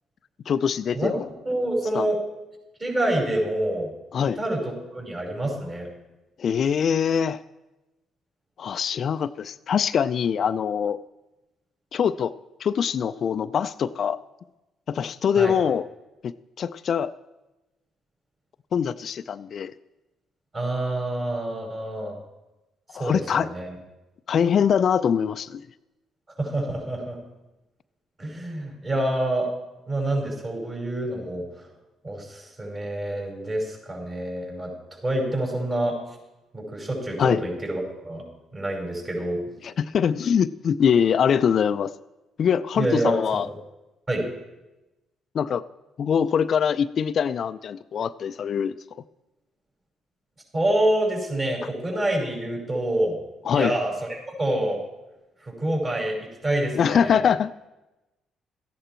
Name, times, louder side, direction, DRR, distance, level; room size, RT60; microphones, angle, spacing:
voice 1, 0.5-1.3 1.9-2.1 4.1-4.4 6.4-7.4 8.6-11.0 11.9-12.3 12.6-14.2 14.9-15.9 16.2-17.1 18.7-19.7 22.9-23.5 24.3-25.6 37.2-37.4 39.6-41.9 42.4-43.5 45.3-45.6 46.0-48.7 53.5-53.8 56.8-57.7, left 7 dB, 55° left, 13 dB, 0.4 m, -23 dB
voice 2, 1.4-2.2 2.8-3.9 4.2-5.9 15.4-15.6 20.5-22.2 23.0-23.7 26.4-27.2 28.2-29.5 29.9-31.7 32.0-34.7 35.0-36.0 36.5-38.2 38.5-39.4 42.7-43.2 43.4-43.6 44.1-44.3 50.5-53.2 53.5-54.8 55.4-57.2, right 1 dB, 35° right, -1 dB, 5.6 m, -27 dB
14.0 x 10.0 x 4.5 m, 1.0 s
hypercardioid pair, 55°, 0 cm